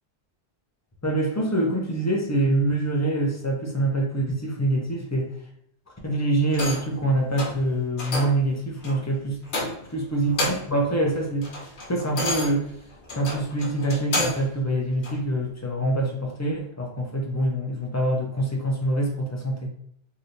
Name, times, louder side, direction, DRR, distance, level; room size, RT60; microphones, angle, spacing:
voice 1, 1.0-5.3 6.0-9.4 9.9-11.6 11.9-12.7 13.2-19.7, right 1 dB, 20° left, 0 dB, 0.5 m, -25 dB
sound 1, 6.5-7.0 7.4-7.6 8.0-8.4 8.8-9.0 9.5-10.0 10.2-10.8 11.2-14.5 15.0-15.2, left 2 dB, 55° left, 0.8 m, -30 dB
3.2 x 2.9 x 2.6 m, 0.67 s
omnidirectional pair, 1.1 m